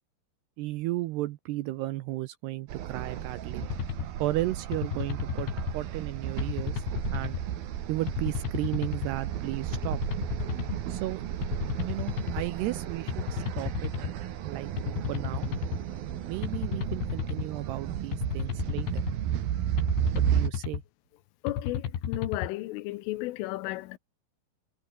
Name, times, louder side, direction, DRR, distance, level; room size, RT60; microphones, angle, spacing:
voice 1, 0.6-3.7 4.2-7.4 7.9-10.0 10.9-11.2 11.9-14.1 14.4-15.5 16.3-19.0 20.2-20.8, right 16 dB, 80° right, 2.5 m, -34 dB
sound 1, 2.7-20.5, right 11 dB, 60° right, 3.2 m, -33 dB
sound 2, 3.6-4.1 4.7-5.8 6.4-7.4 8.1-9.1 9.7-10.8 11.4-12.5 13.1-14.1 14.8-15.8 16.4-17.5 18.1-19.2 19.8-20.8 21.5-22.5, left 9 dB, 65° left, 5.2 m, -33 dB
voice 2, 21.4-24.0, left 19 dB, 90° left, 3.5 m, -34 dB
omnidirectional pair, 5.6 m